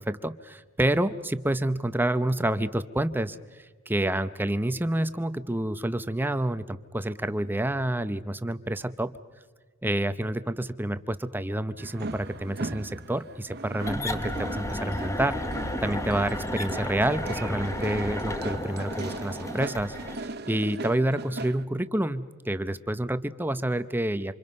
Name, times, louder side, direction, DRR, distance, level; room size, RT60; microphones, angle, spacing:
voice 1, 0.0-9.1 9.8-15.4 15.8-24.3, right 1 dB, 10° right, 12 dB, 0.7 m, -28 dB
sound 1, 11.8-21.6, right 2 dB, 50° right, 0.8 m, -39 dB
sound 2, 13.8-20.2, left 1 dB, 15° left, 1.2 m, -33 dB
28.0 x 27.0 x 5.4 m, 1.5 s
head